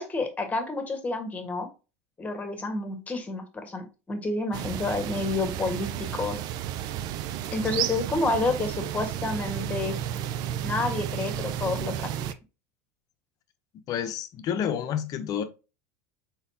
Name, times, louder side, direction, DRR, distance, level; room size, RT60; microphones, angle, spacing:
voice 1, 0.0-1.7 2.2-6.4 7.5-10.0 10.6-12.1, left 3 dB, 20° left, 1.4 m, -29 dB
sound 1, 4.5-12.3, right 11 dB, 55° right, 0.4 m, -32 dB
voice 2, 13.9-15.4, left 8 dB, 50° left, 0.7 m, -29 dB
4.1 x 4.0 x 2.8 m
hypercardioid pair, 95°, 8 cm